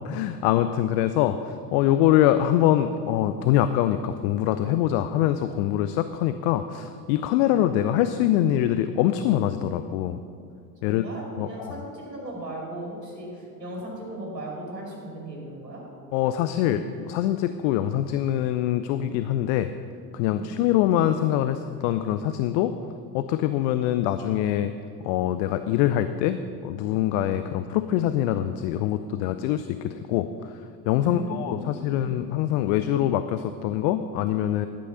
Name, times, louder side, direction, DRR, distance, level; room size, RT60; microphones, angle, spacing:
voice 1, 0.0-10.2 10.8-11.0 11.4-11.8 16.1-19.7 20.1-22.7 23.1-24.7 25.0-30.3 30.9-34.7, left 12 dB, 50° left, 10 dB, 0.5 m, -24 dB
voice 2, 10.9-15.8 20.3-20.5 31.0-32.3, right 1 dB, 85° right, -2 dB, 2.6 m, -37 dB
11.5 x 8.4 x 5.6 m, 2.5 s
figure-of-eight pair, 70°, 48 cm